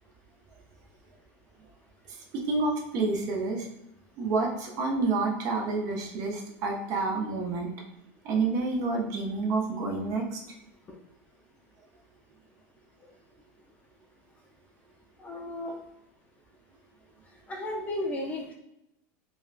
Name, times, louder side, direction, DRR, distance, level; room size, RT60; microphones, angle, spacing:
voice 1, 2.1-3.7 4.2-7.7 8.2-10.4, right 3 dB, 45° right, 0 dB, 0.6 m, -29 dB
voice 2, 15.2-15.7 17.5-18.5, left 1 dB, 20° left, 0 dB, 0.4 m, -34 dB
3.6 x 2.1 x 2.4 m, 0.83 s
supercardioid pair, 150°, 8 cm